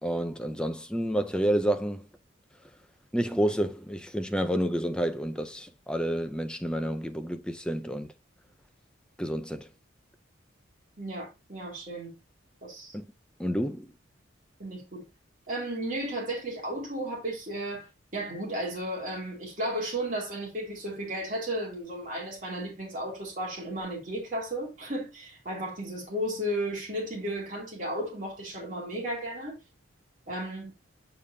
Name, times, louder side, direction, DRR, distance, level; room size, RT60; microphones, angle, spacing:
voice 1, 0.0-2.1 3.1-8.1 9.2-9.7 12.9-13.0 13.4-13.9, equal, 5° left, 0.4 m, -29 dB
voice 2, 11.0-12.1 12.6-13.0 14.6-15.0 15.5-17.9 18.1-29.6 30.3-30.7, right 1 dB, 40° right, 2.8 m, -34 dB
6.9 x 5.1 x 2.7 m
head